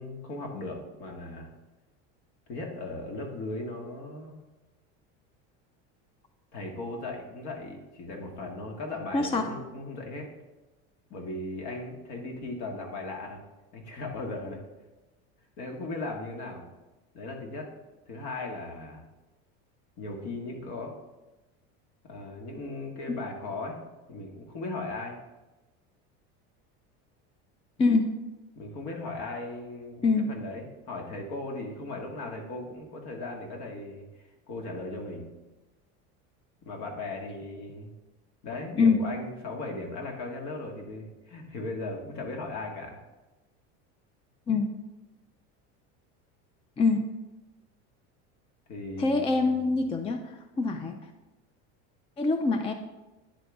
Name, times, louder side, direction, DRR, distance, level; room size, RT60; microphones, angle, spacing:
voice 1, 0.0-1.5 2.5-4.3 6.5-10.3 11.1-13.4 13.7-14.6 15.6-16.6 17.1-17.7 18.1-19.0 20.0-20.9 22.0-23.8 24.1-25.2 28.5-34.0 34.5-35.3 36.6-37.9 38.4-43.0 48.7-49.8, left 2 dB, 60° left, 1 dB, 1.7 m, -37 dB
voice 2, 9.1-9.5 23.1-23.2 27.8-28.1 30.0-30.3 38.8-39.0 44.5-44.7 46.8-47.0 49.0-50.2 50.6-51.0 52.2-52.7, left 4 dB, 15° left, 6 dB, 0.4 m, -24 dB
10.0 x 3.8 x 3.5 m, 1.1 s
supercardioid pair, 115°, 34 cm